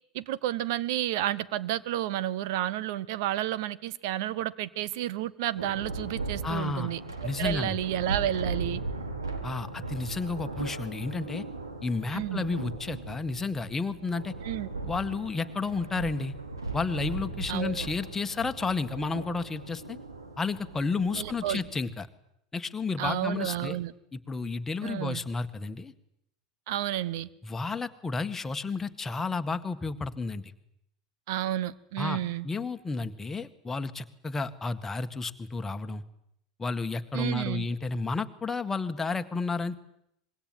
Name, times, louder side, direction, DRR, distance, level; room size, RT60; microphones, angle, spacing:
voice 1, 0.1-7.0 7.4-8.8 12.1-12.5 14.4-14.7 17.5-17.9 21.2-21.6 23.0-23.9 24.8-25.2 26.7-27.3 31.3-32.5 37.1-37.7, right 13 dB, 60° right, 18 dB, 1.2 m, -31 dB
Thunder, 5.5-21.8, right 3 dB, 85° right, 3.9 m, -38 dB
voice 2, 6.4-6.9 7.2-7.8 9.4-11.4 11.8-14.3 14.8-16.3 16.7-20.0 20.4-22.1 22.5-23.8 24.1-25.9 27.4-30.5 32.0-32.2 32.4-36.0 36.6-39.8, left 4 dB, 15° left, 8 dB, 1.8 m, -31 dB
25.5 x 22.0 x 9.5 m, 0.76 s
figure-of-eight pair, 80°, 2 cm